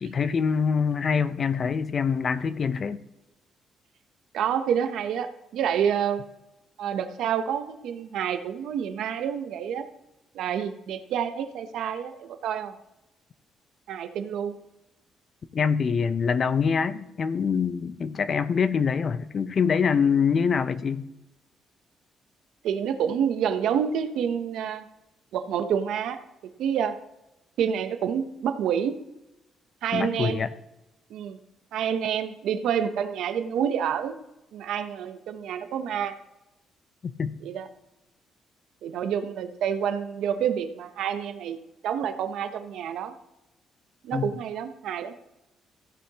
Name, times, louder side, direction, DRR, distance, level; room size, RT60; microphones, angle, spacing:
voice 1, 0.0-3.0 15.5-21.1 29.9-30.5 37.0-37.3 44.1-44.3, left 6 dB, 45° left, 0.7 m, -25 dB
voice 2, 4.3-6.2 6.8-9.9 10.3-12.7 13.9-14.6 22.6-24.9 25.3-26.2 26.6-27.0 27.6-29.0 29.8-30.4 31.1-31.4 31.7-34.1 34.5-36.1 37.4-37.7 38.8-41.6 41.8-43.1 44.0-45.1, right 8 dB, 80° right, 0.8 m, -28 dB
15.0 x 9.3 x 2.9 m
cardioid pair, 90°, 0 cm